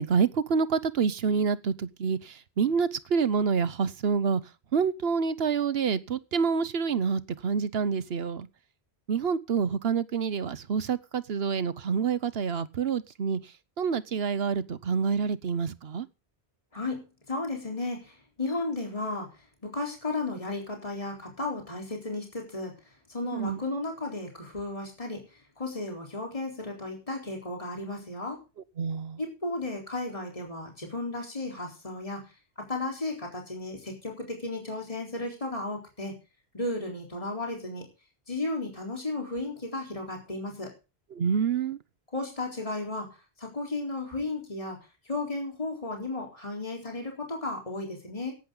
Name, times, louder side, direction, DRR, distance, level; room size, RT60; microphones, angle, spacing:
voice 1, 0.0-4.4 4.7-8.5 9.1-13.4 13.8-16.1 23.3-23.6 28.8-29.2 41.1-41.8, right 6 dB, 65° right, 1.1 m, -27 dB
voice 2, 16.7-19.3 19.6-22.7 23.1-25.3 25.6-28.4 29.2-32.3 32.6-36.2 36.5-37.9 38.3-40.7 42.1-44.8 45.1-48.3, left 2 dB, 30° left, 4.0 m, -34 dB
16.5 x 12.0 x 3.9 m
omnidirectional pair, 1.1 m